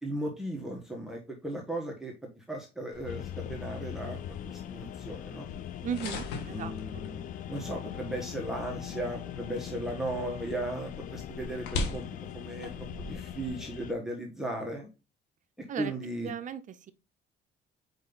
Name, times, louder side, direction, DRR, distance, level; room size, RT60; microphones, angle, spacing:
voice 1, 0.0-5.5 6.5-12.1 12.3-14.9 15.8-16.3, right 1 dB, ahead, 1.4 m, -36 dB
sound 1, 2.9-13.5, left 3 dB, 90° left, 1.5 m, -42 dB
sound 2, 3.0-13.9, left 12 dB, 50° left, 0.4 m, -41 dB
voice 2, 5.8-7.0 15.7-15.9 16.2-16.9, right 8 dB, 50° right, 0.6 m, -37 dB
5.2 x 4.8 x 3.9 m
cardioid pair, 110°, 17 cm